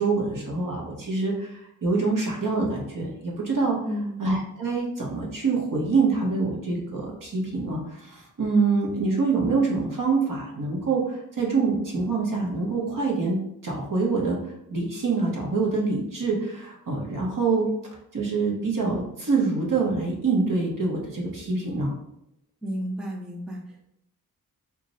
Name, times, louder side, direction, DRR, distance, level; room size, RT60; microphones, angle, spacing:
voice 1, 0.0-1.5 1.8-3.8 4.2-13.4 13.6-14.4 14.7-17.7 18.1-21.9, right 4 dB, 60° right, -2 dB, 0.9 m, -25 dB
voice 2, 3.8-4.2 22.6-23.9, equal, ahead, -1 dB, 0.4 m, -32 dB
2.4 x 2.0 x 3.9 m, 0.77 s
wide cardioid pair, 100°, 38 cm